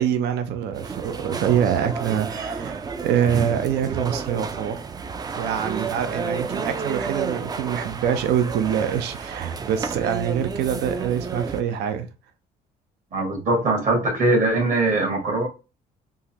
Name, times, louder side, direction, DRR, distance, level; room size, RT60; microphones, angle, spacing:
voice 1, 0.0-4.8 5.4-12.1, right 9 dB, 75° right, 0.5 m, -25 dB
sound 1, 0.7-11.6, right 5 dB, 25° right, 0.3 m, -31 dB
voice 2, 13.1-15.5, right 2 dB, 50° right, 1.6 m, -21 dB
3.7 x 2.1 x 2.8 m
cardioid pair, 110°, 17 cm